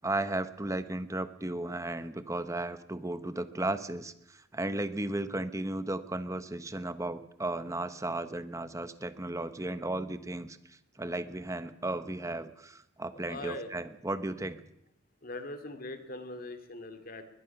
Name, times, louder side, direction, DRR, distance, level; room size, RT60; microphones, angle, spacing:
voice 1, 0.0-14.6, right 2 dB, 15° right, 11 dB, 1.0 m, -35 dB
voice 2, 13.1-13.7 15.2-17.2, left 2 dB, 45° left, 8 dB, 2.5 m, -41 dB
21.5 x 21.0 x 6.0 m, 0.82 s
head